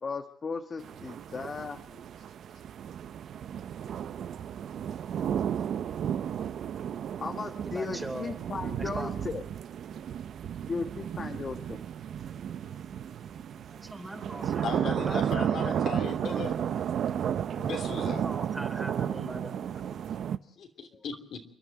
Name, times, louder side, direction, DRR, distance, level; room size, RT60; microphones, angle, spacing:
voice 1, 0.0-2.0 7.2-9.4 10.7-11.8, left 4 dB, 40° left, 5 dB, 1.3 m, -36 dB
sound 1, 0.8-20.4, right 9 dB, 65° right, 0.8 m, -33 dB
voice 2, 7.5-8.3 8.8-9.2 13.7-16.7 18.1-19.5, right 1 dB, 10° right, 7 dB, 3.1 m, -41 dB
Piano, 12.2-20.2, right 5 dB, 45° right, 4.9 m, -55 dB
voice 3, 14.6-16.5 17.5-18.3 20.6-21.4, left 6 dB, 65° left, 5 dB, 3.1 m, -37 dB
29.0 x 11.0 x 9.1 m, 0.69 s
cardioid pair, 90°, 0 cm